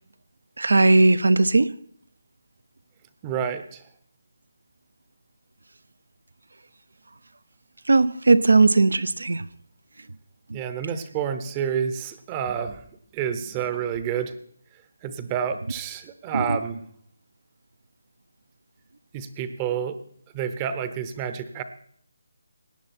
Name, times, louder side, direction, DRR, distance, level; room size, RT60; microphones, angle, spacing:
voice 1, 0.6-1.7 7.9-9.4 10.5-10.6 16.3-16.6, right 3 dB, 85° right, 0.6 m, -18 dB
voice 2, 3.2-3.8 10.5-12.8 13.1-14.4 15.0-16.8 19.1-20.0 20.3-21.6, right 8 dB, 20° right, 0.7 m, -29 dB
17.5 x 9.4 x 4.3 m
figure-of-eight pair, 165°, 0 cm